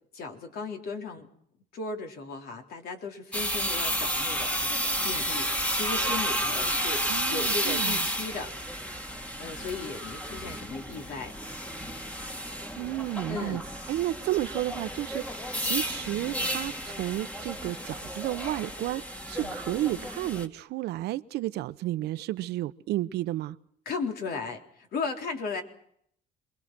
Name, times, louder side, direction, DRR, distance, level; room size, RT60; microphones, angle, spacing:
voice 1, 0.1-1.3 1.7-8.5 9.4-11.3 13.3-13.6 19.4-19.6 23.9-25.6, left 4 dB, 65° left, 4 dB, 3.9 m, -36 dB
sound 1, 3.3-20.5, equal, 10° left, 2.0 m, -32 dB
voice 2, 7.1-8.0 12.8-13.6 13.9-19.0 19.3-23.6, right 15 dB, 80° right, 12 dB, 1.0 m, -32 dB
26.5 x 22.0 x 6.2 m, 0.67 s
cardioid pair, 110°, 17 cm